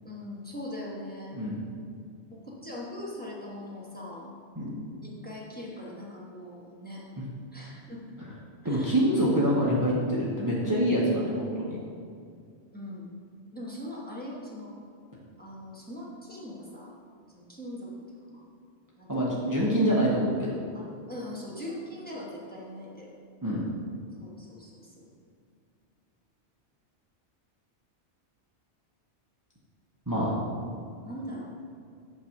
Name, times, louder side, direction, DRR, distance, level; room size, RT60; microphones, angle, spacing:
voice 1, 0.0-1.4 2.3-4.3 5.0-7.0 7.5-8.1 8.6-8.9 12.7-13.1 13.5-14.7 15.4-16.9 17.3-17.9 18.2-18.4 19.0-19.1 20.7-23.1 24.2-25.0 31.0-31.7, left 1 dB, 10° left, -4 dB, 1.1 m, -41 dB
voice 2, 8.6-11.8 19.1-20.5 23.4-23.6 30.1-30.3, equal, 20° right, -6 dB, 0.8 m, -25 dB
8.4 x 3.1 x 5.8 m, 2.3 s
omnidirectional pair, 1.2 m